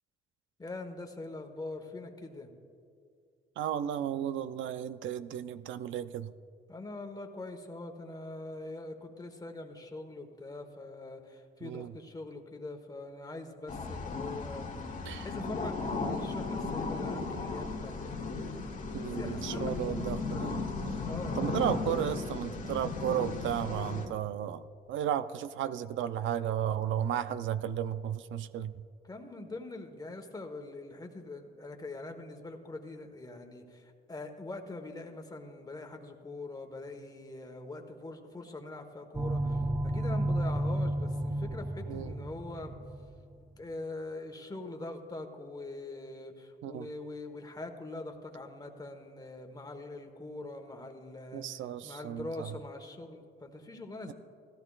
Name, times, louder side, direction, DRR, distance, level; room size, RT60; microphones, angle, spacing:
voice 1, 0.6-2.5 6.7-14.7 15.2-20.6 21.1-21.5 29.0-33.6 34.1-39.4 39.8-42.7 43.6-51.4 51.8-54.1, left 2 dB, 20° left, 4 dB, 1.2 m, -43 dB
voice 2, 3.6-6.3 11.6-11.9 15.1-15.3 18.9-20.6 21.3-24.6 24.9-28.7 41.9-42.1 46.6-46.9 51.3-52.6, right 10 dB, 75° right, 13 dB, 0.5 m, -34 dB
sound 1, 13.7-24.1, left 3 dB, 40° left, 1.6 m, -36 dB
sound 2, 39.1-43.1, right 1 dB, 15° right, 0.6 m, -32 dB
17.0 x 13.5 x 2.4 m, 2.3 s
cardioid pair, 90°, 20 cm